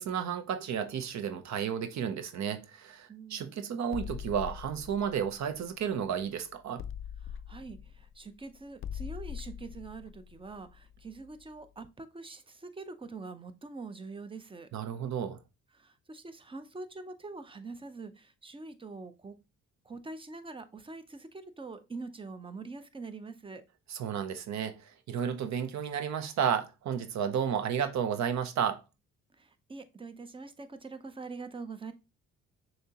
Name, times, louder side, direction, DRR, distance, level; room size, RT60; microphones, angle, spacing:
voice 1, 0.0-6.8 14.7-15.4 23.9-28.8, right 8 dB, 65° right, 0.7 m, -32 dB
voice 2, 3.1-3.5 7.2-14.7 15.7-19.4 19.8-23.6 29.4-31.9, right 3 dB, 15° right, 0.6 m, -44 dB
sound 1, 3.9-6.3 6.8-11.4, left 8 dB, 45° left, 0.4 m, -42 dB
6.5 x 2.9 x 2.9 m
cardioid pair, 90°, 30 cm